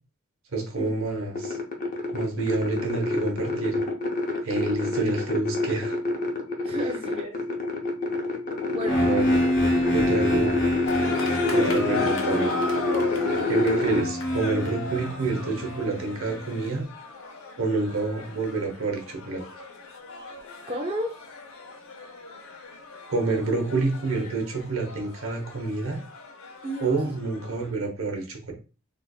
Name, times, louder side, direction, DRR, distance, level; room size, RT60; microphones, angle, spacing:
voice 1, 0.5-1.6 2.1-3.8 4.4-6.0 6.7-6.8 9.0-9.4 9.9-10.5 11.5-12.6 13.5-16.9 17.6-19.4 23.1-26.0 26.8-28.5, right 3 dB, 70° right, 0.9 m, -28 dB
sound 1, 1.3-14.0, left 2 dB, 40° left, 0.6 m, -27 dB
voice 2, 6.6-7.4 8.7-9.1 13.1-13.5 20.7-21.2 26.6-27.0, equal, 25° right, 0.4 m, -33 dB
sound 2, 8.9-16.7, left 1 dB, 55° left, 1.0 m, -28 dB
sound 3, 10.9-27.7, left 3 dB, 80° left, 0.7 m, -37 dB
4.0 x 2.5 x 2.3 m
head